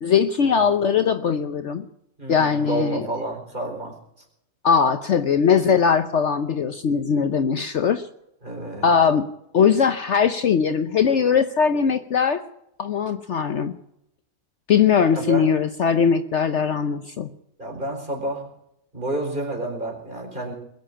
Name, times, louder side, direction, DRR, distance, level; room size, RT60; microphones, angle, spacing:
voice 1, 0.0-1.9 2.3-3.0 4.6-8.0 8.8-9.3 9.5-12.4 12.8-13.8 14.7-17.3, left 6 dB, 55° left, 10 dB, 1.0 m, -20 dB
voice 2, 2.2-3.9 8.4-8.9 15.1-15.6 15.9-16.0 17.6-18.4 18.9-20.5, right 2 dB, 35° right, 0 dB, 4.7 m, -30 dB
21.5 x 7.6 x 8.6 m, 0.80 s
omnidirectional pair, 1.5 m